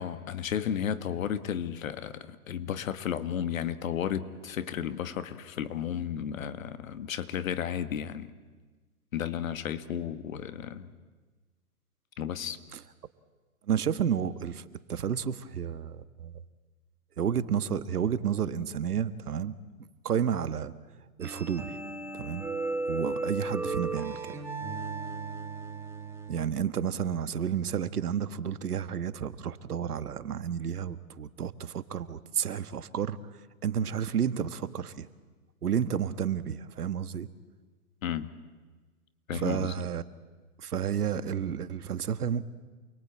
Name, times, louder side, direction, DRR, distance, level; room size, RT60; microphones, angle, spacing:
voice 1, 0.0-8.3 9.1-10.9 12.2-12.6 38.0-38.3 39.3-39.7, left 9 dB, 60° left, 11 dB, 1.9 m, -33 dB
voice 2, 13.7-14.6 14.9-16.3 17.2-19.5 20.0-20.7 21.2-21.8 22.1-22.5 22.9-24.3 26.3-33.2 33.6-35.1 35.6-37.3 39.3-40.0 40.6-42.4, right 8 dB, 75° right, 13 dB, 1.6 m, -31 dB
sound 1, 21.2-26.5, right 3 dB, 5° right, 1.8 m, -35 dB
28.0 x 22.5 x 8.8 m, 1.3 s
hypercardioid pair, 145°, 46 cm